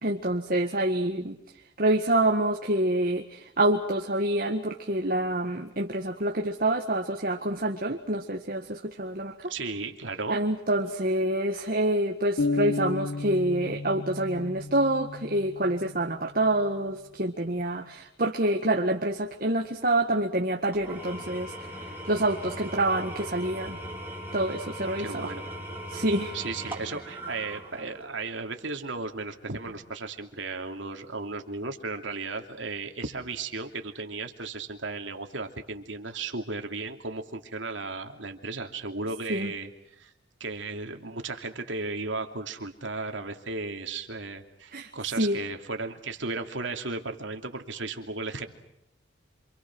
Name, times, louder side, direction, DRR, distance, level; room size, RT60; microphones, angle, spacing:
voice 1, 0.0-1.4 1.8-9.5 10.3-21.5 22.0-23.8 24.3-25.3 25.9-26.3 39.3-39.5 44.7-44.9 45.2-45.4, right 1 dB, 50° right, 3 dB, 1.7 m, -27 dB
voice 2, 9.5-10.4 25.0-25.5 26.3-40.1 40.4-48.5, right 3 dB, 75° right, 5 dB, 2.9 m, -35 dB
sound 1, 12.4-16.1, left 3 dB, 75° left, 1.1 m, -32 dB
Engine / Tools, 20.7-28.2, equal, 10° right, 4.2 m, -39 dB
27.5 x 27.5 x 6.2 m, 0.78 s
head